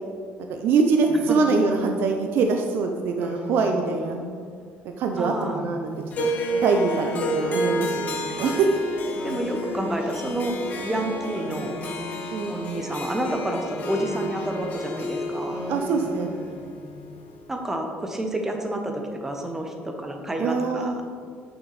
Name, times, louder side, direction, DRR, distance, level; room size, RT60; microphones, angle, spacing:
voice 1, 0.5-4.2 5.0-5.9 6.2-8.1 8.4-8.7 9.1-9.2 12.3-12.5 15.7-16.3 20.4-21.0, right 4 dB, 60° right, 4 dB, 0.6 m, -24 dB
Singing, 1.1-2.5 3.2-4.5 5.1-6.4 7.1-8.6 9.1-10.9 11.3-13.0 13.4-15.1 15.5-17.1, equal, 30° right, 1.8 m, -39 dB
voice 2, 5.2-5.7 8.4-8.5 9.2-10.5 10.8-11.8 12.5-15.6 17.5-21.0, right 1 dB, 10° right, 3 dB, 0.8 m, -29 dB
Harp, 6.1-17.4, equal, 40° left, 1.3 m, -31 dB
9.3 x 5.9 x 4.1 m, 2.1 s
cardioid pair, 160°, 4 cm